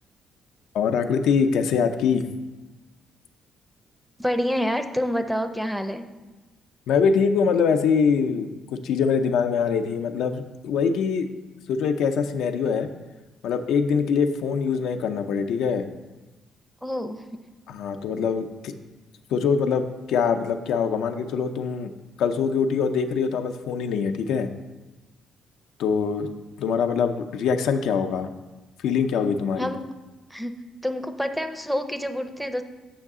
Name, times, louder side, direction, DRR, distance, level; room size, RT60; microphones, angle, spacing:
voice 1, 0.7-2.2 6.9-11.3 11.7-12.9 13.4-15.8 17.7-18.7 19.3-21.9 22.2-24.5 25.8-26.3 26.6-28.3 28.8-29.7, left 6 dB, 85° left, 7 dB, 0.5 m, -23 dB
voice 2, 4.2-6.1 16.8-17.5 29.6-29.8 30.3-32.6, equal, ahead, 8 dB, 0.5 m, -28 dB
7.7 x 5.4 x 3.6 m, 1.1 s
cardioid pair, 90°, 0 cm